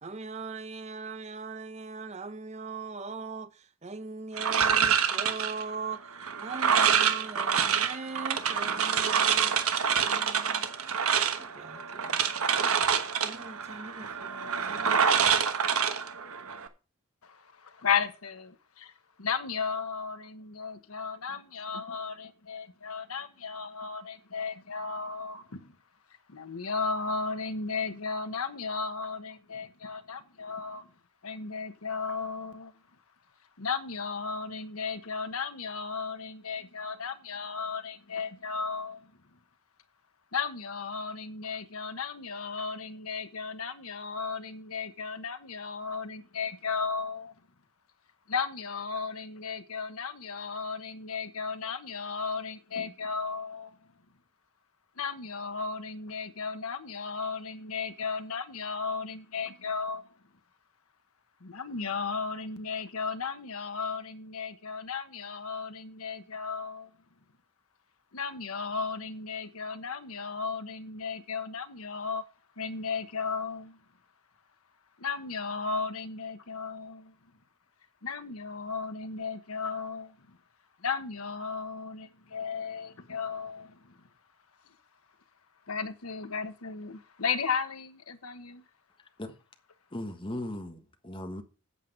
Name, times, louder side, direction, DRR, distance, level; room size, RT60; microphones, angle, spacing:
voice 1, 0.0-6.1 6.4-12.2 13.2-15.3, right 4 dB, 30° right, 0.8 m, -40 dB
sound 1, 4.4-16.7, right 7 dB, 85° right, 1.2 m, -27 dB
voice 2, 17.2-18.9 19.2-25.7 26.3-30.9 31.2-32.7 33.6-39.1 40.3-47.3 48.3-53.8 55.0-60.1 61.4-66.9 68.1-72.2 72.6-73.8 75.0-77.1 78.0-80.4 80.8-84.0 85.7-88.6, left 5 dB, 90° left, 1.1 m, -35 dB
voice 3, 89.9-91.4, left 1 dB, 25° left, 1.3 m, -37 dB
8.3 x 7.8 x 5.3 m
head